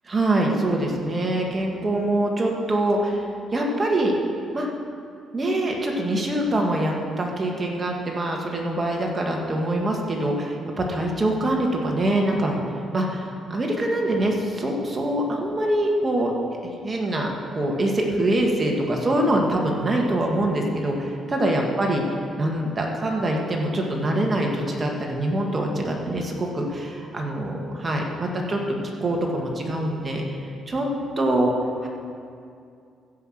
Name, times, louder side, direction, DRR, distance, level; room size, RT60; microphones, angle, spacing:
voice 1, 0.1-4.1 4.5-4.7 5.3-12.6 12.9-16.3 16.8-22.0 22.4-30.2 30.7-30.9 31.2-31.5 31.8-31.9, right 1 dB, 30° right, 0 dB, 1.7 m, -24 dB
15.0 x 5.7 x 6.4 m, 2.5 s
cardioid pair, 90°, 0 cm